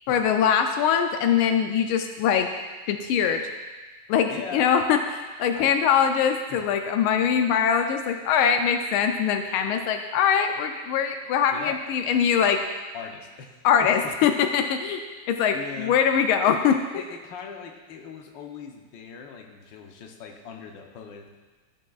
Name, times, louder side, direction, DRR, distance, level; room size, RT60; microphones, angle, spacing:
voice 1, 0.1-2.5 2.9-3.4 4.1-12.7 13.6-16.8, left 7 dB, 90° left, 6 dB, 1.4 m, -22 dB
voice 2, 4.3-4.9 5.5-5.7 6.5-6.6 11.5-11.8 12.9-14.3 15.5-16.0 16.9-21.3, left 6 dB, 70° left, 3 dB, 1.5 m, -40 dB
14.0 x 6.6 x 2.3 m, 1.3 s
omnidirectional pair, 2.2 m